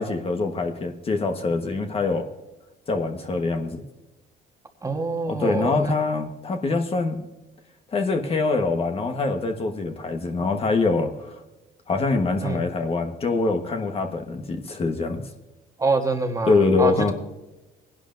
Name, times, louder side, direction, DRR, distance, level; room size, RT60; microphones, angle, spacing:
voice 1, 0.0-2.2 2.9-3.8 5.3-7.3 7.9-11.4 11.9-15.2 16.5-17.1, left 3 dB, 35° left, 5 dB, 1.3 m, -24 dB
voice 2, 4.8-5.9 12.4-12.6 15.8-17.1, right 3 dB, 20° right, 4 dB, 1.5 m, -25 dB
20.5 x 11.0 x 2.6 m, 1.0 s
cardioid pair, 110°, 17 cm